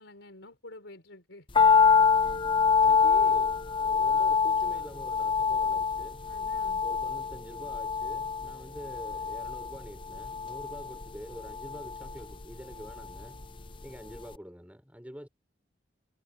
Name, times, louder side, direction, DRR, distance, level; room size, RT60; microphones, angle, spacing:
voice 1, 0.0-1.5 6.3-6.8, left 2 dB, 85° left, 3.9 m, -49 dB
sound 1, 1.5-13.8 14.1-14.2, left 6 dB, 25° left, 0.7 m, -26 dB
voice 2, 2.8-6.3 6.8-13.4 13.8-15.3, equal, 10° right, 4.3 m, -46 dB
head